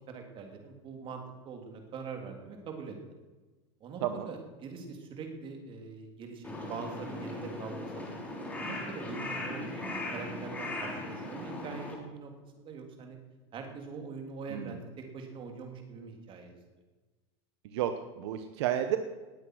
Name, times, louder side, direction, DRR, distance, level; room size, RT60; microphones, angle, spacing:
voice 1, 0.1-3.0 3.8-8.1 8.6-13.2 13.5-16.6, right 5 dB, 35° right, 4 dB, 3.3 m, -43 dB
Crow, 6.4-11.9, left 1 dB, 10° left, 3.6 m, -38 dB
voice 2, 17.7-19.0, right 11 dB, 75° right, 9 dB, 1.0 m, -31 dB
19.5 x 8.2 x 6.2 m, 1.2 s
supercardioid pair, 130°, 14 cm